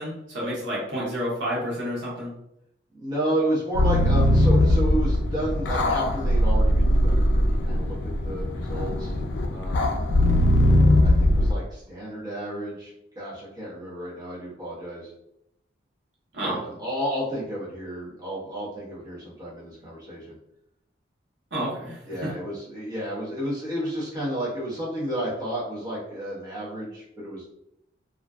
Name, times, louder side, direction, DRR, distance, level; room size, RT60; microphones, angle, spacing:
voice 1, 0.0-2.3 16.3-16.6 21.5-22.0, equal, 75° right, -5 dB, 0.9 m, -29 dB
voice 2, 2.9-8.0 8.2-9.2 9.5-10.1 11.0-15.1 16.4-20.4 22.1-27.5, right 1 dB, 20° right, -8 dB, 0.9 m, -31 dB
sound 1, 3.7-11.5, left 1 dB, 70° left, 0.3 m, -20 dB
2.5 x 2.3 x 2.3 m, 0.80 s
head